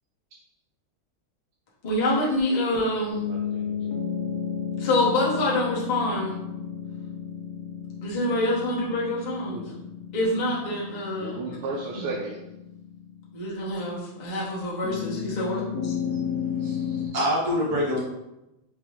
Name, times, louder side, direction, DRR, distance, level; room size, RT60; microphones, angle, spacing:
voice 1, 1.8-3.3 4.8-6.3 8.0-9.6 10.1-11.4 11.9-12.1 13.3-15.6, left 1 dB, 55° left, -5 dB, 0.4 m, -26 dB
sound 1, 3.1-13.8 14.8-17.1, left 8 dB, 75° left, 0.9 m, -33 dB
voice 2, 3.1-3.9 9.5-9.8 11.2-12.4, right 3 dB, 90° right, -1 dB, 1.5 m, -35 dB
voice 3, 16.6-18.0, equal, 25° right, -6 dB, 0.4 m, -26 dB
4.2 x 2.5 x 3.5 m, 0.92 s
omnidirectional pair, 2.3 m